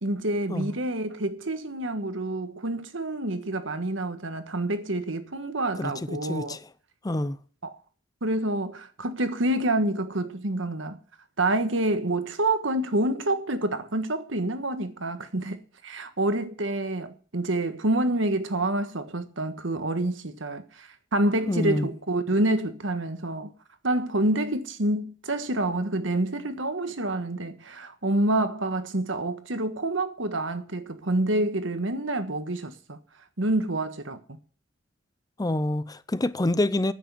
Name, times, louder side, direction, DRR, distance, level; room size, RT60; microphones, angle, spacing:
voice 1, 0.0-6.6 7.6-7.7 8.2-11.0 11.4-23.5 23.8-33.0 33.4-34.2, right 1 dB, 70° right, 1.5 m, -27 dB
voice 2, 6.3-6.6 7.0-7.4 21.5-21.9 35.4-36.9, left 1 dB, 20° left, 0.6 m, -26 dB
9.7 x 8.5 x 9.5 m
head